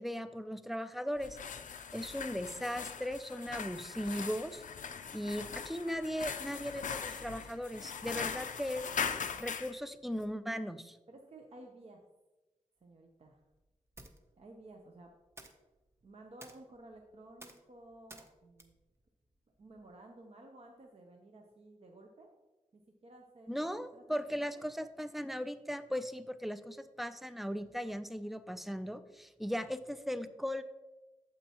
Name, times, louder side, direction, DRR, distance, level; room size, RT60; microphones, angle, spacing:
voice 1, 0.0-1.4 1.9-4.6 5.1-8.8 9.4-11.0 23.5-30.6, equal, ahead, 12 dB, 0.4 m, -38 dB
sound 1, 1.2-9.7, left 6 dB, 80° left, 0.5 m, -40 dB
voice 2, 11.1-12.0 12.8-13.4 14.4-15.1 16.0-18.8 19.6-22.3 22.7-23.7 23.9-24.0 24.3-24.6, right 2 dB, 50° right, 2 dB, 0.7 m, -54 dB
sound 2, 12.8-20.0, right 1 dB, 20° right, 0.7 m, -58 dB
8.6 x 7.3 x 2.9 m, 1.1 s
wide cardioid pair, 130°, 13 cm